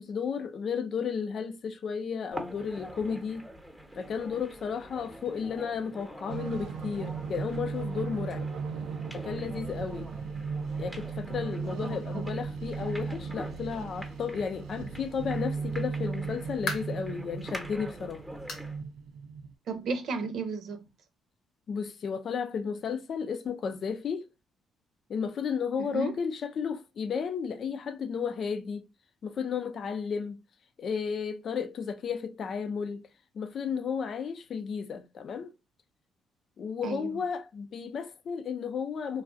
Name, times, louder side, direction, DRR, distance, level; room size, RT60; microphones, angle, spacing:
voice 1, 0.0-3.5 3.9-8.5 9.1-10.1 10.8-18.2 21.7-24.3 25.1-28.9 29.2-30.4 30.8-33.1 33.3-35.5 36.6-39.2, left 6 dB, 55° left, 0.5 m, -33 dB
sound 1, 2.3-18.8, equal, ahead, 0.9 m, -45 dB
sound 2, 6.3-19.5, right 5 dB, 90° right, 0.3 m, -36 dB
voice 2, 11.6-12.2 19.7-20.8 25.8-26.1 36.8-37.2, right 4 dB, 70° right, 0.8 m, -34 dB
sound 3, 16.6-17.1 17.6-17.7 18.5-18.8 19.1-19.2 19.7-19.8 20.9-21.0, left 3 dB, 70° left, 1.0 m, -37 dB
3.4 x 2.4 x 2.4 m
cardioid pair, 90°, 0 cm